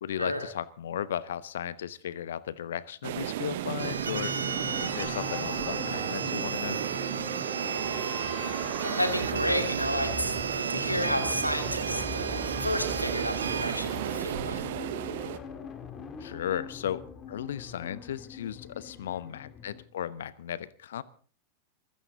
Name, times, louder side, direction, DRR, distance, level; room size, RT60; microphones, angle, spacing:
voice 1, 0.0-4.3 4.8-6.8 16.2-21.0, left 10 dB, 60° left, 19 dB, 1.0 m, -35 dB
sound 1, 3.0-15.4, right 13 dB, 55° right, 1.2 m, -34 dB
sound 2, 3.8-19.8, left 6 dB, 25° left, 2.3 m, -41 dB
sound 3, 3.8-13.8, right 6 dB, 70° right, 0.8 m, -35 dB
voice 2, 8.8-14.7, left 1 dB, 90° left, 8 dB, 2.4 m, -31 dB
23.5 x 15.0 x 3.9 m, 0.42 s
figure-of-eight pair, 90°, 0 cm